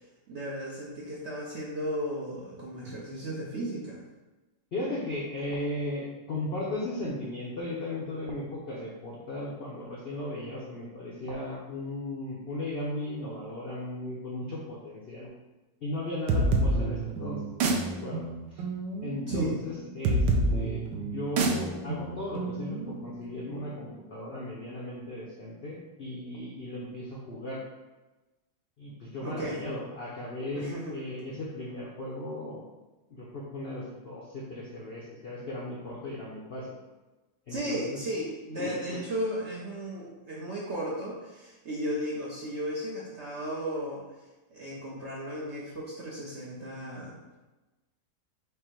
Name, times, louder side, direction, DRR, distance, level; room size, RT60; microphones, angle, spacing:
voice 1, 0.3-4.0 19.3-19.6 29.2-29.6 30.6-30.9 37.5-44.0 44.5-47.4, equal, 60° right, -5 dB, 0.7 m, -35 dB
voice 2, 4.7-15.3 15.8-18.2 19.0-20.2 20.5-27.6 28.8-32.6 33.1-36.7 37.5-38.0 38.6-39.0, left 1 dB, 70° left, -5 dB, 0.5 m, -36 dB
sound 1, 16.3-23.7, right 2 dB, 85° right, 1.3 m, -29 dB
5.0 x 2.1 x 4.5 m, 1.1 s
omnidirectional pair, 1.9 m